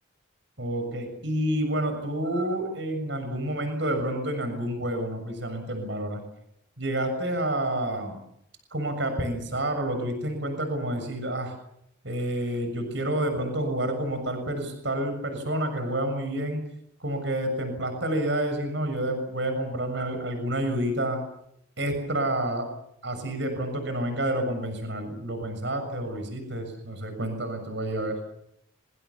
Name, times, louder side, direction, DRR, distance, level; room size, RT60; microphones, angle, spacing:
voice 1, 0.6-6.2 6.8-8.2 8.7-11.5 12.0-16.6 17.0-21.2 21.8-22.7 23.0-28.2, right 1 dB, 65° right, 7 dB, 6.8 m, -29 dB
26.5 x 25.0 x 7.1 m, 0.75 s
head